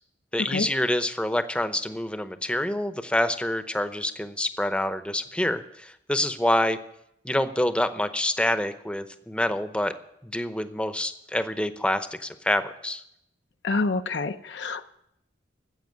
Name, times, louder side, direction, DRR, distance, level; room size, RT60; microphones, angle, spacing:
voice 1, 0.3-6.8 7.2-9.9 10.2-13.0, left 1 dB, 5° left, 10 dB, 0.7 m, -27 dB
voice 2, 13.6-14.8, left 3 dB, 70° left, 8 dB, 0.6 m, -27 dB
14.5 x 8.0 x 9.4 m, 0.79 s
head